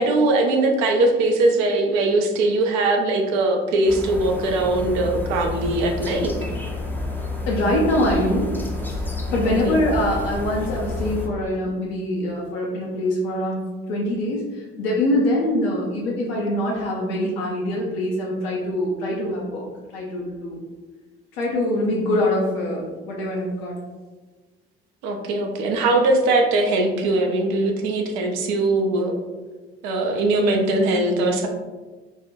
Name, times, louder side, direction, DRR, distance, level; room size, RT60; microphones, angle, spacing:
voice 1, 0.0-6.3 9.4-9.8 25.0-29.2 29.8-31.5, right 2 dB, 60° right, 2 dB, 0.5 m, -21 dB
sound 1, 3.9-11.3, left 2 dB, 5° left, 0.5 m, -29 dB
voice 2, 7.5-8.5 9.3-19.6 19.9-20.6 21.3-23.8, left 1 dB, 65° left, -3 dB, 0.6 m, -24 dB
3.4 x 2.1 x 2.6 m, 1.3 s
figure-of-eight pair, 45°, 31 cm